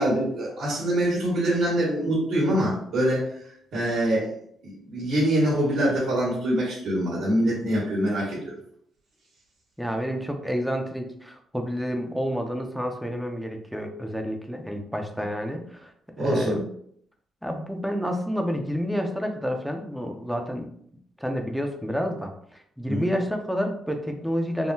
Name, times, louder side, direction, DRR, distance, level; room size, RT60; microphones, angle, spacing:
voice 1, 0.0-3.4 3.7-4.3 4.6-8.5 16.2-16.6 22.9-23.1, right 1 dB, 70° right, -6 dB, 1.5 m, -24 dB
voice 2, 9.8-15.9 16.2-16.6 17.4-20.7 21.2-24.7, equal, ahead, 3 dB, 0.5 m, -29 dB
3.6 x 2.1 x 2.7 m, 0.65 s
cardioid pair, 90°, 0 cm